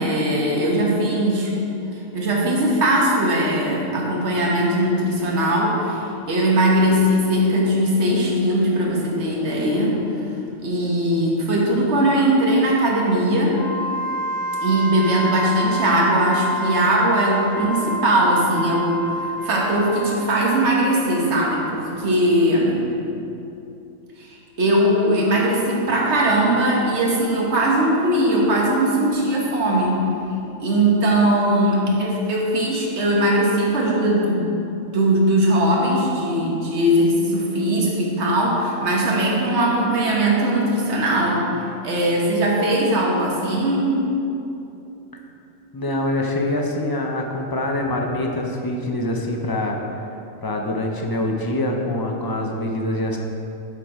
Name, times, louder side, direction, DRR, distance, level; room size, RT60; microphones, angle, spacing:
voice 1, 0.0-1.5 2.1-10.0 10.6-13.6 14.6-19.0 19.4-22.9 24.2-30.0 30.6-34.5 34.9-41.5 41.8-44.0 47.9-48.0, right 1 dB, 55° right, -3 dB, 1.6 m, -20 dB
Wind instrument woodwind instrument, 13.5-21.0, equal, 60° left, 1.2 m, -28 dB
voice 2, 45.7-50.0 50.4-53.2, left 1 dB, 25° left, 1 dB, 0.6 m, -24 dB
7.7 x 6.9 x 4.9 m, 2.9 s
omnidirectional pair, 1.4 m